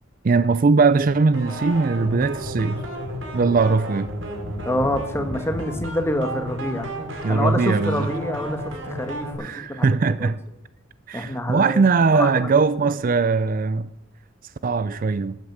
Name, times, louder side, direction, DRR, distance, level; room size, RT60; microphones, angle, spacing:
voice 1, 0.2-2.8 3.3-4.1 7.2-8.1 9.4-10.4 11.1-13.9 14.6-15.4, right 4 dB, 40° right, 0.4 m, -20 dB
sound 1, 1.3-9.3, equal, 65° right, 4.1 m, -33 dB
voice 2, 4.6-6.9 7.3-10.3 11.1-11.8 12.1-12.5, left 1 dB, 10° left, 1.5 m, -27 dB
14.5 x 9.5 x 7.4 m
head